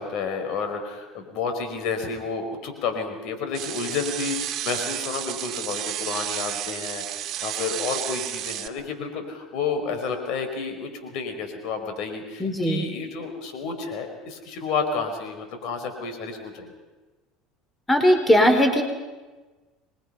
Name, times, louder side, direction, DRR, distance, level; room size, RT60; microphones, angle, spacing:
voice 1, 0.0-16.7, left 5 dB, 65° left, 6 dB, 4.6 m, -30 dB
sound 1, 3.5-8.7, right 13 dB, 55° right, 1.7 m, -31 dB
voice 2, 12.4-12.8 17.9-18.8, equal, 15° left, 6 dB, 4.1 m, -19 dB
27.5 x 22.0 x 5.6 m, 1.2 s
supercardioid pair, 85°, 0 cm